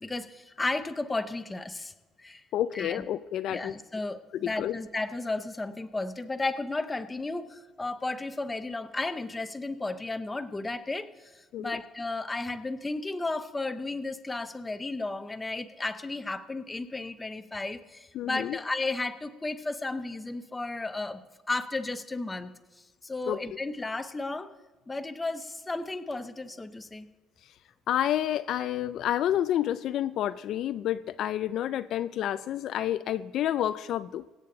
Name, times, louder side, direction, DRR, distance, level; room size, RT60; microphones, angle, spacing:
voice 1, 0.0-1.9 2.2-2.4 2.7-3.0 3.5-22.5 22.8-24.5 24.9-27.1, left 2 dB, 10° left, 9 dB, 0.6 m, -34 dB
voice 2, 2.5-3.7 4.3-4.8 11.5-11.8 18.2-18.6 23.3-23.4 27.4-27.5 27.9-34.2, left 11 dB, 55° left, 13 dB, 0.3 m, -29 dB
23.5 x 8.3 x 3.8 m, 1.3 s
cardioid pair, 165°, 0 cm